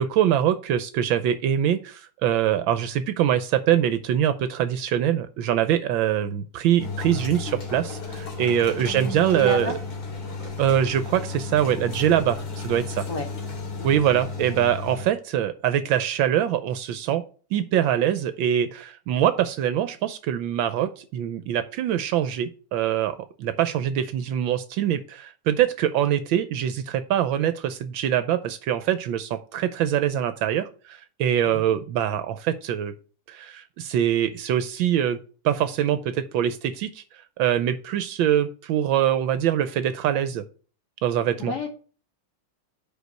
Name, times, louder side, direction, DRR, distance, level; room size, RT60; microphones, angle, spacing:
voice 1, 0.0-9.7 10.4-12.4 12.6-13.0 13.8-17.2 17.5-32.9 33.3-35.2 35.4-37.0 37.4-40.4 41.0-41.5, right 10 dB, 75° right, 11 dB, 1.2 m, -23 dB
sound 1, 6.8-15.0, left 4 dB, 75° left, 2.9 m, -34 dB
voice 2, 8.8-9.8 13.1-13.3 13.8-14.0 31.4-31.8 41.4-41.7, left 1 dB, 50° left, 1 dB, 2.2 m, -31 dB
5.1 x 4.7 x 6.3 m, 0.39 s
omnidirectional pair, 2.4 m